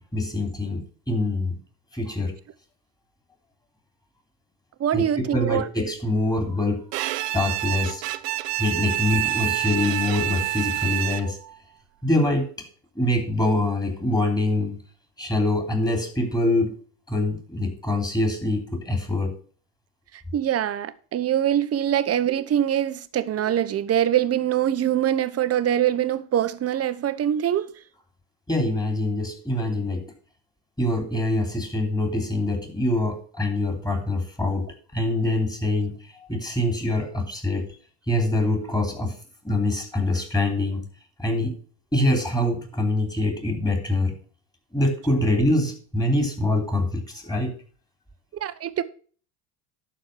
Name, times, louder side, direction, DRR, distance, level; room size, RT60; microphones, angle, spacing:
voice 1, 0.0-1.6 1.9-2.3 4.9-6.8 7.3-8.0 8.6-11.4 12.0-12.7 12.9-14.8 15.2-16.7 17.1-19.3 28.5-30.0 30.8-34.7 34.9-37.7 38.1-39.2 39.4-40.8 41.2-41.5 41.9-44.1 44.7-47.5, left 1 dB, 10° left, 3.2 m, -24 dB
voice 2, 4.8-5.6 20.3-27.7 48.4-48.8, right 10 dB, 30° right, 0.9 m, -23 dB
Bowed string instrument, 6.9-11.5, right 16 dB, 80° right, 0.8 m, -27 dB
11.5 x 4.6 x 7.3 m
supercardioid pair, 95°, 47 cm